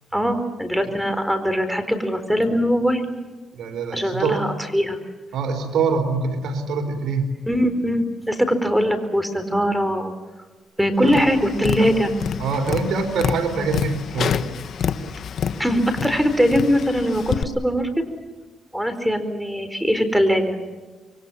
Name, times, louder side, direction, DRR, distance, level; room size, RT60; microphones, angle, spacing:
voice 1, 0.1-3.1 3.9-4.5 4.7-5.0 7.5-10.1 10.8-12.1 15.6-17.9 18.7-20.6, equal, ahead, 8 dB, 4.4 m, -21 dB
voice 2, 3.5-4.5 5.3-7.3 11.0-11.2 11.8-11.9 12.4-14.4, right 5 dB, 80° right, 6 dB, 3.8 m, -24 dB
Tap, 11.0-17.4, left 7 dB, 65° left, 1.4 m, -28 dB
27.0 x 23.5 x 7.3 m, 1.3 s
cardioid pair, 90°, 0 cm